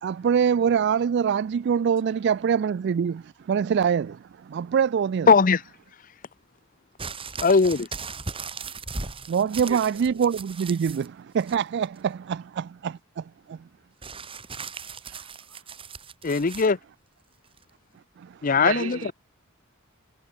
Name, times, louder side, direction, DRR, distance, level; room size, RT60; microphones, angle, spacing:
voice 1, 0.0-5.3 9.0-13.6 18.2-18.5, right 7 dB, 55° right, 0.3 m, -25 dB
voice 2, 5.3-5.6 7.4-7.9 16.2-16.8 18.4-19.1, left 5 dB, 40° left, 0.6 m, -19 dB
sound 1, 7.0-11.1 11.4-12.0 14.0-16.7 17.6-17.7, right 4 dB, 25° right, 2.6 m, -38 dB
voice 3, 9.7-10.2 15.0-15.3 18.5-19.1, right 5 dB, 90° right, 1.9 m, -33 dB
head